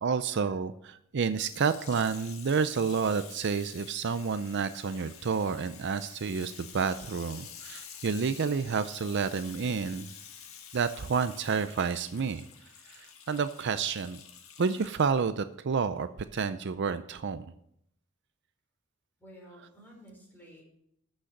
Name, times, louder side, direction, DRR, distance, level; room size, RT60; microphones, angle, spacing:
voice 1, 0.0-10.1 10.7-12.4 12.9-14.2 14.6-17.5, right 5 dB, 55° right, 12 dB, 0.5 m, -30 dB
Water tap faucet / Sink (filling or washing), 1.3-15.3 16.0-16.1, left 8 dB, 80° left, 1.7 m, -49 dB
voice 2, 19.2-20.6, equal, 10° left, -2 dB, 4.7 m, -52 dB
13.5 x 6.5 x 6.5 m, 0.73 s
head